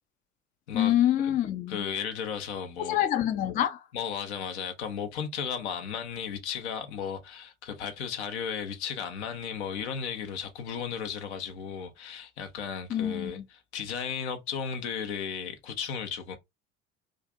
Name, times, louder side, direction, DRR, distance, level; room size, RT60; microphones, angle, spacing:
voice 1, 0.7-1.8 2.8-3.8 12.9-13.4, left 11 dB, 25° left, 0.4 m, -26 dB
voice 2, 1.7-3.1 3.9-13.4 13.7-16.4, left 7 dB, 65° left, 0.8 m, -35 dB
2.4 x 2.4 x 3.8 m
figure-of-eight pair, 65°, 36 cm